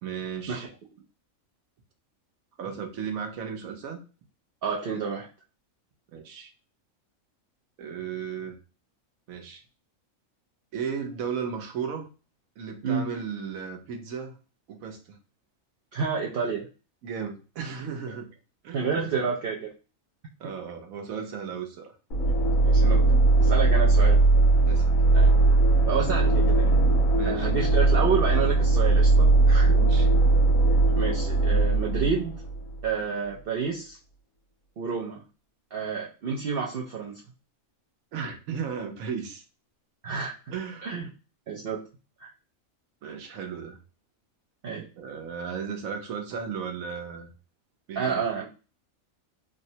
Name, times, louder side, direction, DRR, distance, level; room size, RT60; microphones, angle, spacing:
voice 1, 0.0-0.7 2.6-4.0 6.1-6.5 7.8-8.6 9.3-9.6 10.7-12.1 12.6-14.4 14.7-15.2 17.0-18.3 18.6-19.2 20.4-22.0 24.7-24.9 27.2-27.5 29.7-30.1 38.1-39.4 40.5-40.9 43.0-43.8 45.0-47.3 47.9-48.2, right 6 dB, 85° right, 4 dB, 1.1 m, -35 dB
voice 2, 4.6-5.3 12.8-13.1 15.9-16.7 18.7-19.7 22.6-24.2 25.1-25.6 25.9-26.9 27.2-29.7 31.0-32.3 32.8-34.0 34.8-35.2 35.7-37.2 40.0-40.3 40.8-41.1 41.5-41.8 42.2-42.3 44.6-44.9 48.0-48.5, right 6 dB, 65° right, -2 dB, 0.6 m, -29 dB
sound 1, 22.1-32.9, right 3 dB, 80° left, 1.6 m, -20 dB
3.5 x 2.1 x 2.7 m, 0.33 s
omnidirectional pair, 1.4 m